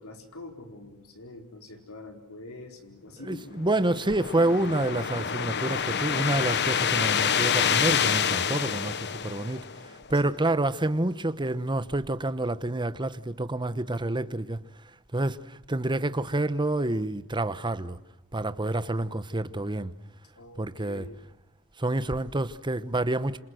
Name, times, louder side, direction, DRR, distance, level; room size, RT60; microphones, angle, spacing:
voice 1, 0.0-3.4 10.2-10.3 20.3-21.1, left 2 dB, 65° left, 4.6 m, -45 dB
voice 2, 3.2-9.6 10.1-14.6 15.1-18.0 18.3-19.9 20.6-21.1 21.8-23.4, right 2 dB, 20° right, 1.1 m, -28 dB
sound 1, 3.5-10.0, left 7 dB, 50° left, 1.2 m, -27 dB
sound 2, 11.3-11.6, right 1 dB, 40° right, 7.5 m, -53 dB
27.5 x 27.5 x 7.8 m
head